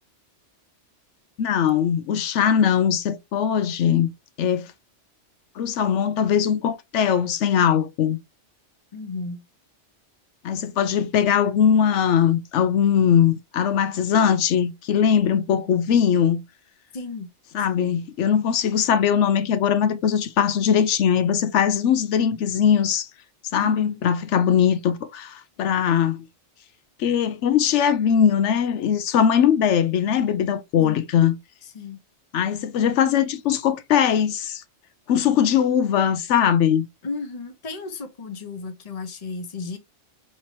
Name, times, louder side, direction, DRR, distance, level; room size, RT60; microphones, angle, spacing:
voice 1, 1.4-4.1 4.4-4.7 5.6-8.2 10.4-16.4 17.5-23.1 23.5-26.2 27.0-31.4 32.3-34.6 35.1-36.9, left 8 dB, 80° left, 0.9 m, -20 dB
voice 2, 8.9-9.5 16.9-17.3 17.7-17.9 23.6-24.0 30.8-31.0 31.7-32.0 37.0-39.8, left 3 dB, 35° left, 0.8 m, -34 dB
5.9 x 3.0 x 2.7 m
omnidirectional pair, 1.2 m